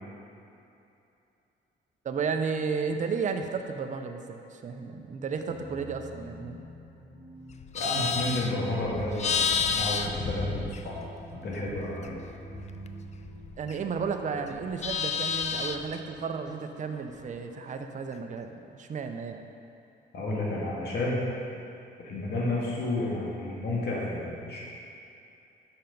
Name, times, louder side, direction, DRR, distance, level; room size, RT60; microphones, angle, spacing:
voice 1, 2.0-6.6 13.6-19.5, right 5 dB, 40° right, 6 dB, 0.5 m, -33 dB
sound 1, 5.5-18.0, right 2 dB, 5° right, 1.1 m, -47 dB
Livestock farm animals working animals, 7.5-11.2 11.5-14.1 14.4-16.0, left 6 dB, 35° left, 0.4 m, -31 dB
voice 2, 7.7-11.0 11.3-12.2 20.1-21.2 22.0-24.6, left 2 dB, 55° left, -5 dB, 1.8 m, -31 dB
5.7 x 5.6 x 5.3 m, 2.7 s
cardioid pair, 90°, 20 cm